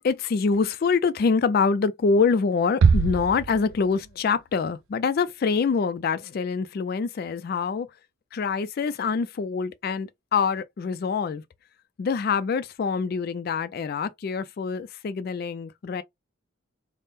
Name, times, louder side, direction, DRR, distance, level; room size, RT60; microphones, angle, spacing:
voice 1, 0.0-7.9 8.3-11.4 12.0-16.0, left 5 dB, 50° left, 0.3 m, -25 dB
sound 1, 2.8-4.4, right 5 dB, 85° right, 0.4 m, -23 dB
3.5 x 2.0 x 4.1 m
head